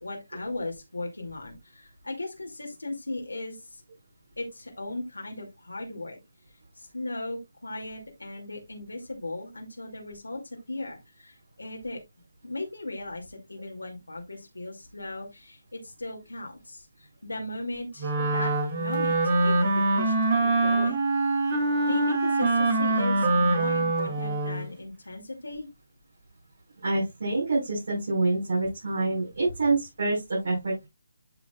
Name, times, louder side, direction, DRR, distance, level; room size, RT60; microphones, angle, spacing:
voice 1, 0.0-3.8 4.4-6.2 6.7-10.4 10.7-12.0 12.4-21.1 21.9-25.7, left 2 dB, 80° left, 1 dB, 2.4 m, -37 dB
Wind instrument woodwind instrument, 18.0-24.7, right 2 dB, 35° right, 2.4 m, -24 dB
voice 2, 26.8-30.9, right 2 dB, 55° right, -4 dB, 5.1 m, -27 dB
12.0 x 5.2 x 2.3 m, 0.20 s
figure-of-eight pair, 150°, 0 cm